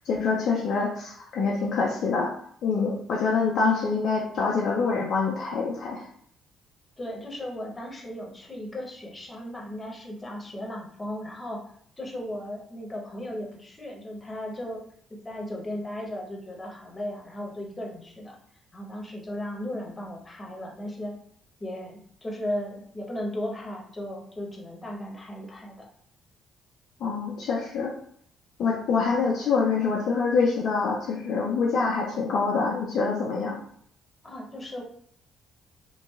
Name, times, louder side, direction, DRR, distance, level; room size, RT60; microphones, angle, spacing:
voice 1, 0.1-2.3 2.6-6.1 27.0-27.9 28.6-33.6, left 4 dB, 55° left, -2 dB, 0.3 m, -25 dB
voice 2, 7.0-11.6 12.0-14.8 15.1-18.4 18.7-21.2 21.6-25.9 34.2-34.8, left 1 dB, 20° left, -1 dB, 0.8 m, -36 dB
2.6 x 2.2 x 2.3 m, 0.62 s
figure-of-eight pair, 45°, 0 cm